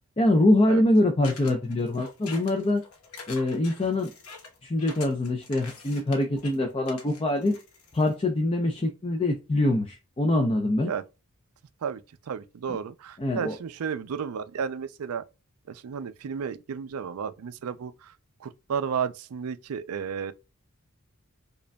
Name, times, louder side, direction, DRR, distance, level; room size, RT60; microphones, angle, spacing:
voice 1, 0.2-2.8 3.3-4.1 4.6-7.5 7.9-10.9 13.2-13.6, left 1 dB, 25° left, 0.5 m, -24 dB
sound 1, 1.2-8.1, left 4 dB, 85° left, 1.0 m, -45 dB
voice 2, 12.3-15.2 15.7-18.1 18.4-20.3, right 7 dB, 80° right, 0.4 m, -32 dB
5.0 x 2.4 x 2.2 m
head